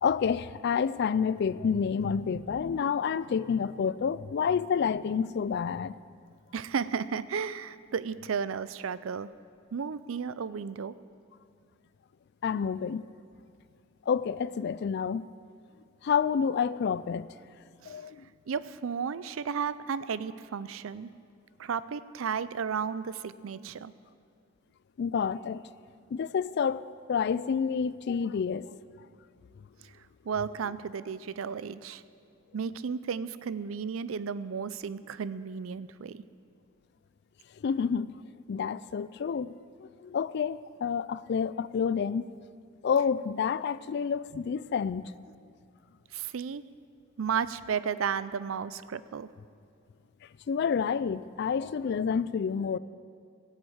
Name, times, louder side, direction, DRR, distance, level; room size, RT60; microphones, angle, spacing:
voice 1, 0.0-5.9 12.4-13.1 14.1-15.3 16.0-17.3 17.9-18.3 25.0-25.6 26.1-28.7 37.6-38.1 38.5-42.3 42.8-45.1 50.5-52.8, left 6 dB, 55° left, 0.3 m, -29 dB
voice 2, 6.5-9.3 9.7-10.9 17.8-18.0 18.5-21.1 21.6-23.9 30.2-32.0 32.5-36.2 46.1-46.6 47.2-49.3, right 6 dB, 85° right, 0.5 m, -33 dB
17.0 x 7.3 x 8.0 m
head